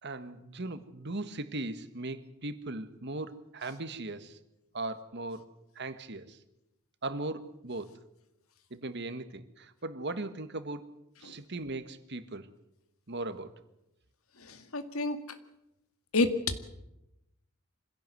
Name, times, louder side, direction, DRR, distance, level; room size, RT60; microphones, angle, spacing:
voice 1, 0.0-4.4 4.7-6.4 7.0-7.9 8.7-10.9 11.2-12.5 13.1-13.5, right 2 dB, 55° right, 11 dB, 1.5 m, -38 dB
voice 2, 14.4-15.4 16.1-16.3, left 2 dB, 85° left, 9 dB, 2.0 m, -30 dB
25.0 x 16.5 x 7.8 m, 0.88 s
head